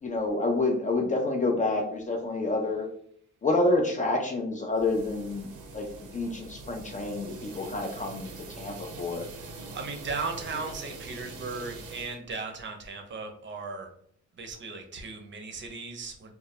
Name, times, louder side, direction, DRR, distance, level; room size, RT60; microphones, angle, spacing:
voice 1, 0.0-2.9 3.4-5.5 5.7-9.2, left 2 dB, 25° left, 2 dB, 0.3 m, -28 dB
sound 1, 4.7-12.2, right 3 dB, 85° right, 0.6 m, -43 dB
voice 2, 9.7-13.9 14.3-16.3, right 4 dB, 40° right, 4 dB, 0.6 m, -37 dB
2.2 x 2.0 x 2.8 m, 0.63 s
cardioid pair, 90°, 30 cm